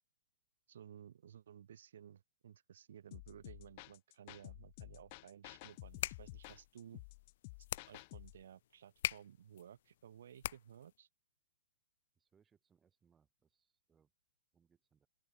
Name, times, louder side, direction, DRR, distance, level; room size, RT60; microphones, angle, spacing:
voice 1, 0.7-7.0 7.9-11.1, right 9 dB, 70° right, 0.6 m, -56 dB
sound 1, 3.1-8.4, left 26 dB, 35° left, 1.1 m, -52 dB
sound 2, 5.7-11.0, left 13 dB, 50° left, 0.3 m, -44 dB
voice 2, 12.1-14.1 14.5-15.1, right 7 dB, 10° right, 6.4 m, -75 dB
hypercardioid pair, 165°, 0 cm